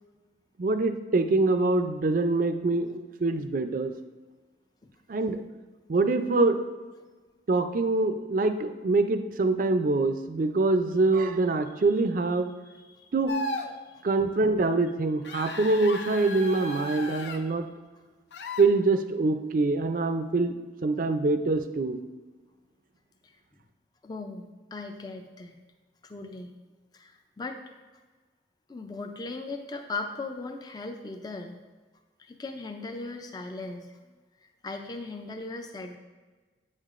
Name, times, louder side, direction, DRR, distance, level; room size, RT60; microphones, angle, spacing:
voice 1, 0.6-3.9 5.1-5.4 5.9-6.6 7.5-12.5 13.1-13.3 14.0-17.7 18.6-20.5 20.8-22.0, right 3 dB, 50° right, 8 dB, 0.4 m, -24 dB
voice 2, 12.7-13.1 13.9-14.1 24.0-25.5 26.0-26.6 26.9-27.6 28.7-31.6 32.2-33.9 34.6-36.0, left 3 dB, 20° left, 5 dB, 0.4 m, -38 dB
sound 1, 13.3-13.7 15.2-17.4 18.3-18.6, left 2 dB, 75° left, 0.6 m, -35 dB
8.5 x 6.5 x 2.5 m, 1.3 s
head